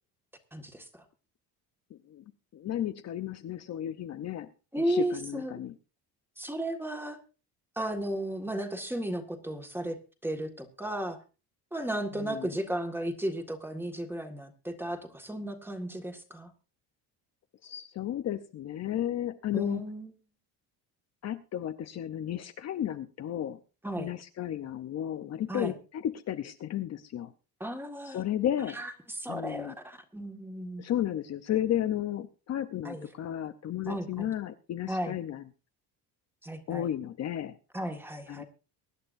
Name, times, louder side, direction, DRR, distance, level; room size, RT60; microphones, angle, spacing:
voice 1, 0.5-1.0 4.7-5.6 6.4-7.2 7.8-11.2 11.7-16.5 19.5-20.1 23.8-24.1 25.5-25.8 27.6-28.2 28.7-30.8 32.8-33.1 33.9-34.3 34.9-35.2 36.4-36.9 37.7-38.4, right 1 dB, 5° right, 5 dB, 1.8 m, -34 dB
voice 2, 2.5-4.5 4.9-5.7 12.2-12.5 17.6-19.8 21.2-23.6 24.0-27.3 28.1-28.8 29.3-29.7 30.8-35.4 36.7-37.6 38.3-38.4, left 11 dB, 40° left, 8 dB, 0.8 m, -33 dB
23.5 x 11.0 x 2.6 m, 0.33 s
cardioid pair, 150°, 39 cm